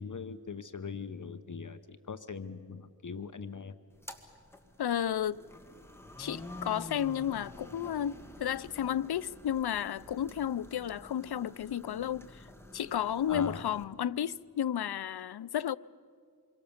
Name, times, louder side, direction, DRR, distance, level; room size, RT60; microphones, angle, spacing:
voice 1, 0.0-3.7 13.3-13.6, left 5 dB, 55° left, 0.9 m, -41 dB
sound 1, 3.9-13.8, left 1 dB, 5° left, 1.9 m, -49 dB
voice 2, 4.8-5.4 6.2-12.5 12.7-15.8, left 10 dB, 90° left, 0.5 m, -32 dB
27.0 x 23.0 x 7.2 m
wide cardioid pair, 80°, 37 cm